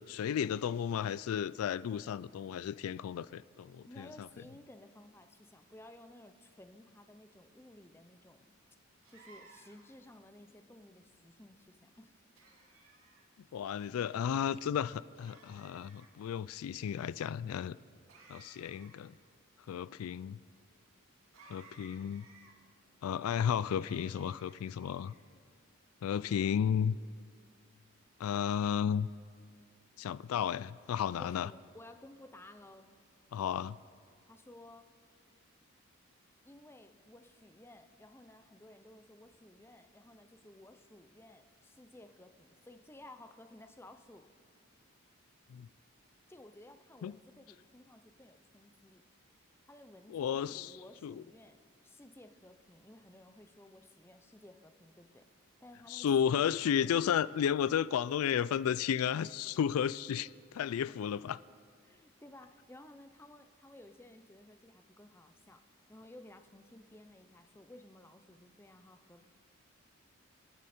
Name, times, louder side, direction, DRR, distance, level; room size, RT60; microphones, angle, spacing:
voice 1, 0.0-4.3 13.5-17.8 18.3-19.1 19.7-20.4 21.5-22.3 23.0-25.1 26.0-27.0 28.2-29.1 30.0-31.5 33.3-33.8 45.5-45.7 47.0-47.1 50.1-50.8 51.0-51.2 55.9-61.4, left 8 dB, 85° left, 18 dB, 0.3 m, -33 dB
voice 2, 3.9-8.5 9.1-12.2 31.2-33.0 34.3-34.9 36.4-44.3 46.3-49.1 49.7-55.3 55.6-56.6 61.8-65.6 65.9-69.3, left 1 dB, 10° left, 8 dB, 0.6 m, -56 dB
sound 1, 9.0-10.0 12.4-13.3 15.1-16.1 18.1-19.2 21.3-22.5 23.8-25.2, right 3 dB, 75° right, 2.2 m, -59 dB
28.5 x 9.8 x 4.3 m, 2.1 s
head